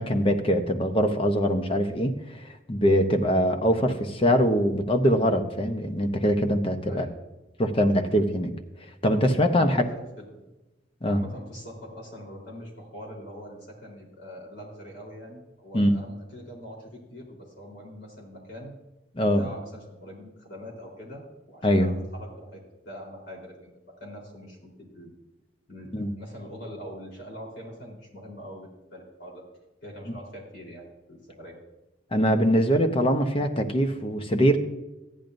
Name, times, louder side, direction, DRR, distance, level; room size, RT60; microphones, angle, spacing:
voice 1, 0.0-2.1 2.4-7.1 7.6-8.5 9.0-9.8 11.0-11.2 15.7-16.0 19.1-19.5 21.6-21.9 25.9-26.1 32.1-34.6, equal, 30° left, 6 dB, 0.9 m, -23 dB
voice 2, 6.8-7.2 9.5-10.4 11.1-18.7 19.4-25.1 25.7-29.4 29.8-31.6, equal, 65° left, 0 dB, 3.8 m, -43 dB
14.5 x 10.5 x 2.6 m, 1.0 s
head